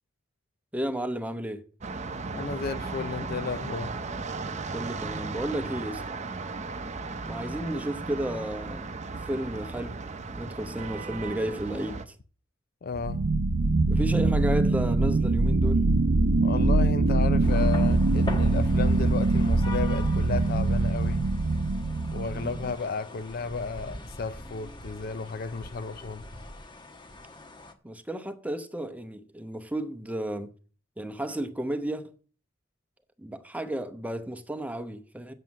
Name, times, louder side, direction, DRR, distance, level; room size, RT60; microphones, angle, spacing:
voice 1, 0.7-1.7 4.7-6.2 7.2-8.9 9.2-10.0 10.3-12.2 13.9-15.9 22.3-22.6 27.8-30.5 31.0-32.1 33.2-35.3, right 1 dB, 10° right, 0.9 m, -33 dB
sound 1, 1.8-12.1, right 3 dB, 35° right, 0.8 m, -36 dB
voice 2, 2.3-4.0 12.8-13.3 16.4-21.3 22.1-26.2, left 4 dB, 50° left, 0.5 m, -33 dB
sound 2, 12.9-22.8, right 2 dB, 80° right, 0.7 m, -23 dB
sound 3, 17.4-27.7, left 2 dB, 25° left, 1.2 m, -41 dB
7.6 x 7.6 x 7.4 m
head